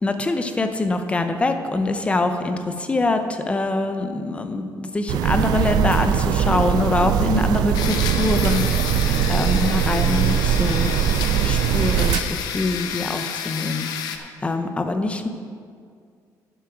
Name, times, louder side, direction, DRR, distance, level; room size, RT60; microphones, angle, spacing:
voice 1, 0.0-10.9 11.4-15.3, left 2 dB, 20° left, 7 dB, 0.7 m, -24 dB
sound 1, 5.1-12.2, right 9 dB, 85° right, 0.4 m, -21 dB
sound 2, 7.7-14.2, left 8 dB, 85° left, 0.8 m, -30 dB
11.0 x 7.1 x 5.0 m, 2.1 s
cardioid pair, 125°, 7 cm